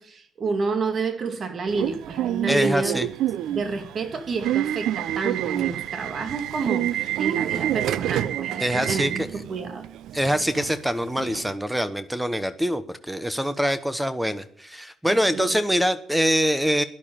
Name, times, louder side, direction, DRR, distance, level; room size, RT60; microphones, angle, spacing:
voice 1, 0.0-3.0 3.5-9.8 15.1-15.5, right 4 dB, 50° right, 8 dB, 2.3 m, -29 dB
Subway metro underground / Alarm, 1.7-11.5, right 12 dB, 80° right, 0.7 m, -28 dB
voice 2, 2.5-3.1 8.6-9.3 10.1-16.8, equal, 5° right, 13 dB, 1.1 m, -24 dB
12.0 x 11.0 x 9.1 m, 0.65 s
cardioid pair, 90°, 0 cm